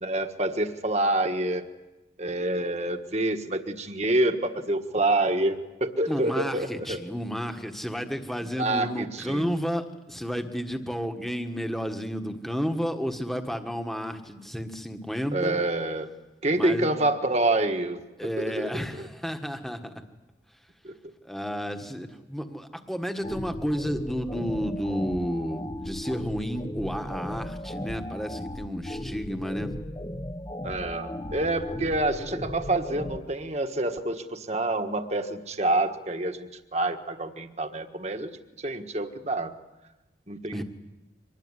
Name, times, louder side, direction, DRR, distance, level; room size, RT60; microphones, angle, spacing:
voice 1, 0.0-1.6 2.2-7.0 8.6-9.5 15.3-16.1 16.4-18.0 18.4-18.7 19.0-19.1 20.8-20.9 30.6-38.3 38.6-39.5 40.3-40.6, right 2 dB, 35° right, 6 dB, 1.5 m, -27 dB
voice 2, 6.1-15.6 16.5-16.9 18.2-19.9 21.2-29.7 40.5-40.6, equal, ahead, 5 dB, 1.5 m, -31 dB
sound 1, 23.2-33.2, left 1 dB, 20° left, 1.1 m, -36 dB
25.0 x 20.0 x 9.8 m, 1.1 s
head